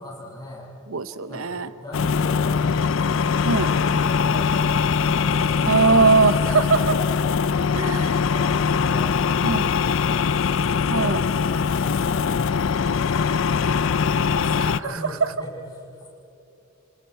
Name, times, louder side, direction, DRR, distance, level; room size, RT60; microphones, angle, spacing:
voice 1, 0.0-0.7 1.3-6.0 6.3-6.4 8.3-16.1, left 1 dB, 20° left, -5 dB, 7.0 m, -38 dB
voice 2, 0.9-1.7 3.4-3.7 5.7-7.0 7.7-8.2 9.4-9.7 10.9-11.2, right 4 dB, 85° right, 12 dB, 0.8 m, -20 dB
sound 1, 1.9-14.8, left 6 dB, 65° left, 0.4 m, -22 dB
30.0 x 27.5 x 4.6 m, 2.8 s
head